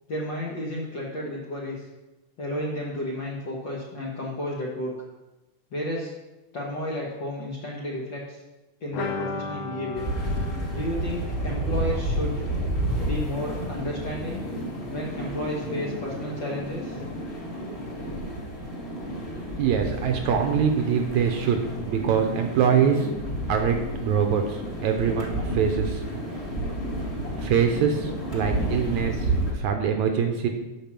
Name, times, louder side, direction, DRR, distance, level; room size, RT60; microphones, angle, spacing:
voice 1, 0.1-1.9 2.4-4.9 5.7-6.1 6.5-8.4 8.8-10.1 10.7-12.5 13.0-14.4 14.9-17.0, left 1 dB, 50° left, -4 dB, 1.4 m, -32 dB
sound 1, 8.9-14.5 14.8-14.9 15.2-15.3, left 4 dB, 75° left, 2.6 m, -38 dB
sound 2, 9.9-29.5, right 1 dB, 25° left, 1.9 m, -31 dB
voice 2, 19.6-21.6 21.9-23.1 23.5-26.0 27.4-30.5, right 7 dB, 75° right, 4 dB, 1.9 m, -24 dB
8.8 x 6.7 x 5.9 m, 1.1 s
omnidirectional pair, 3.8 m